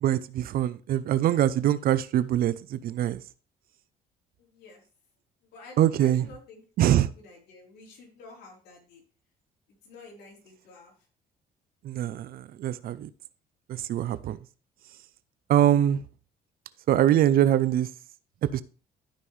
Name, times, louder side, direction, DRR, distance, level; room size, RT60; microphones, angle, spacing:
voice 1, 0.0-3.2 5.8-6.3 6.8-7.1 11.8-13.1 13.7-14.4 15.5-16.0 16.9-17.9 18.4-18.6, right 11 dB, 60° right, 0.6 m, -23 dB
voice 2, 4.4-4.8 5.4-6.9 7.2-9.0 9.8-10.9, left 3 dB, 75° left, 3.9 m, -50 dB
12.5 x 5.5 x 3.2 m
cardioid pair, 110°, 17 cm